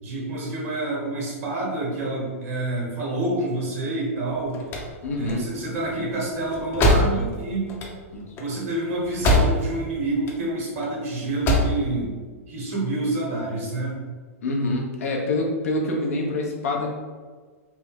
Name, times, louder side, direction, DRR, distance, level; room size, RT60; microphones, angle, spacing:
voice 1, 0.0-4.6 5.2-7.7 8.4-12.1 12.5-14.0, right 2 dB, 65° right, -4 dB, 1.4 m, -28 dB
sound 1, 4.3-9.9 10.1-10.9 11.2-11.8, left 1 dB, 30° left, 0.7 m, -23 dB
voice 2, 5.0-5.5 8.1-8.2 14.4-16.9, left 2 dB, 70° left, 0 dB, 0.8 m, -26 dB
3.3 x 2.2 x 3.6 m, 1.5 s
hypercardioid pair, 110°, 8 cm